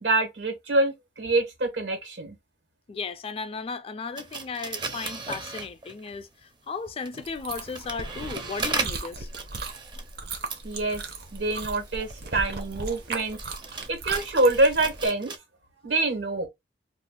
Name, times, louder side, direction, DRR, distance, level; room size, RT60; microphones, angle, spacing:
voice 1, 0.0-2.4 10.6-11.0 11.3-13.4 13.9-15.3 15.8-16.5, right 2 dB, 90° right, 1.4 m, -25 dB
voice 2, 2.9-6.3 6.7-9.3, left 5 dB, 35° left, 0.3 m, -35 dB
sound 1, 4.2-6.2 6.9-15.4, right 4 dB, 25° right, 0.5 m, -37 dB
Chewing mastication, 7.2-15.1, right 3 dB, 60° right, 0.7 m, -37 dB
2.4 x 2.3 x 3.5 m
head